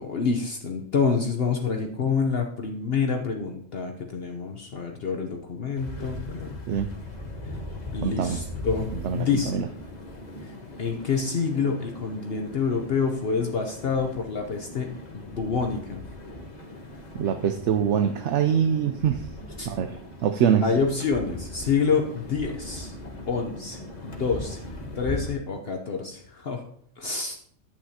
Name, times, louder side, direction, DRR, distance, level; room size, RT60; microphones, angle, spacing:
voice 1, 0.0-6.6 7.9-9.6 10.4-16.0 19.6-19.7 20.6-22.9 23.3-24.6 24.9-26.6 27.0-27.4, left 5 dB, 55° left, 3 dB, 1.0 m, -27 dB
sound 1, 5.7-25.3, left 1 dB, 35° left, 1.3 m, -39 dB
voice 2, 8.0-8.4 9.0-9.7 17.1-19.2 19.7-19.9 20.2-20.6, right 8 dB, 70° right, 8 dB, 0.9 m, -24 dB
11.5 x 8.8 x 2.9 m, 0.63 s
omnidirectional pair, 1.3 m